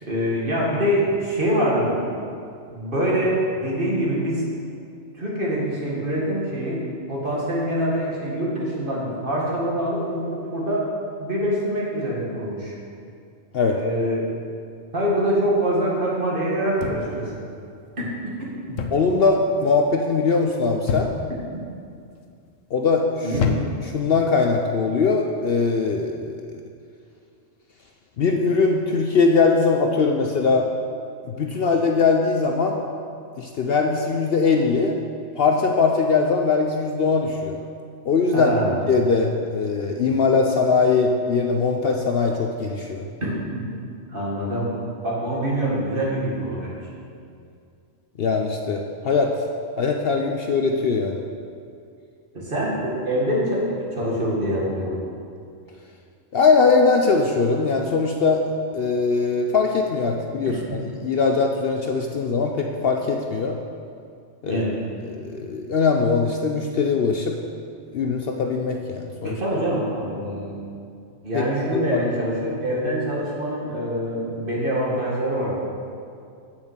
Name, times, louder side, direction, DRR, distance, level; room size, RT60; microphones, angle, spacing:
voice 1, 0.0-2.0 2.7-4.5 5.1-6.8 7.1-10.9 11.2-12.8 13.7-14.4 14.9-17.4 18.0-18.1 18.4-18.5 23.2-23.4 38.3-38.7 43.2-43.6 44.1-44.7 45.0-46.8 52.3-55.0 60.7-60.8 64.5-64.8 69.2-70.6 71.2-75.6, equal, 45° right, -4 dB, 2.1 m, -25 dB
sound 1, 16.8-17.3 18.8-19.2 19.4-19.9 20.9-21.4 22.1-22.5 23.3-24.0 24.9-25.2, left 7 dB, 80° left, 1.1 m, -27 dB
voice 2, 18.9-21.1 22.7-23.3 23.9-26.6 28.2-30.7 31.3-32.8 33.3-35.0 35.4-37.6 38.0-38.5 38.9-43.1 48.2-49.3 49.8-51.2 56.3-58.4 58.7-63.6 64.4-64.6 65.0-67.4 67.9-69.4 71.3-71.4 71.7-72.0, left 4 dB, 60° left, 2 dB, 0.7 m, -21 dB
7.2 x 6.3 x 7.9 m, 2.4 s
omnidirectional pair, 1.3 m